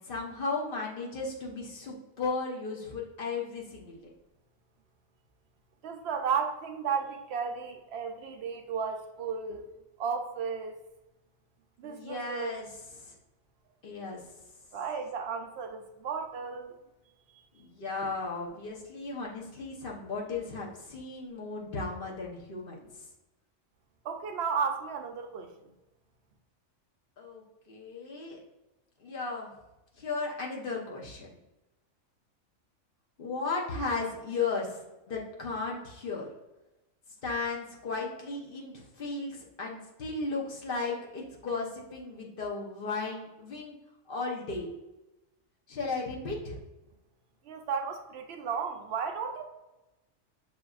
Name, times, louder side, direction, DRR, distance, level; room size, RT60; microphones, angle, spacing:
voice 1, 0.0-4.1 11.8-12.7 13.0-13.1 13.8-14.2 17.5-23.1 27.2-28.4 29.0-29.5 30.0-31.3 33.2-34.8 35.1-36.3 37.2-43.7 44.1-44.7 45.7-46.6, left 4 dB, 50° left, -2 dB, 0.9 m, -35 dB
voice 2, 5.8-9.7 10.0-10.7 11.8-12.7 14.7-16.8 17.4-17.5 24.0-25.5 47.4-49.4, right 6 dB, 65° right, 4 dB, 0.7 m, -34 dB
6.2 x 2.5 x 2.3 m, 0.98 s
omnidirectional pair, 1.4 m